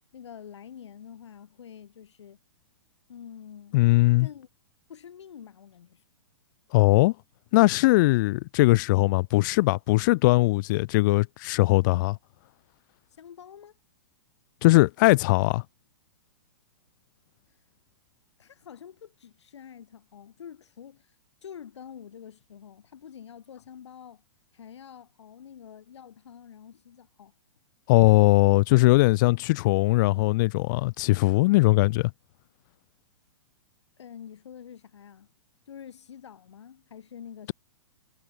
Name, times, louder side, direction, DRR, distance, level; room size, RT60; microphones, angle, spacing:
voice 1, 0.1-2.4 3.1-3.8 4.2-4.5 4.9-6.0 13.1-13.8 17.5-17.6 18.4-21.2 21.4-24.2 24.5-27.3 34.0-35.3 35.7-37.5, left 8 dB, 75° left, 4.2 m, -46 dB
voice 2, 3.7-4.3 6.7-7.1 7.5-12.2 14.6-15.6 27.9-32.1, left 21 dB, 45° left, 0.6 m, -20 dB
hypercardioid pair, 135°, 15 cm